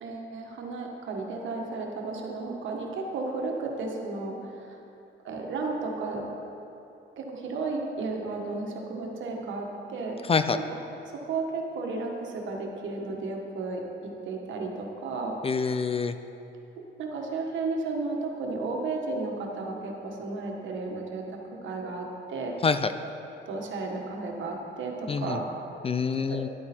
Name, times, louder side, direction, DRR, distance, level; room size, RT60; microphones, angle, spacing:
voice 1, 0.0-4.8 5.2-6.2 7.2-10.2 10.5-13.8 14.2-15.4 17.0-22.5 23.5-25.5 26.3-26.4, right 3 dB, 75° right, 1 dB, 1.5 m, -33 dB
voice 2, 10.2-10.6 15.4-16.1 22.6-22.9 25.1-25.4 25.8-26.5, left 5 dB, 30° left, 10 dB, 0.4 m, -26 dB
11.0 x 8.7 x 4.3 m, 2.8 s
cardioid pair, 90°, 20 cm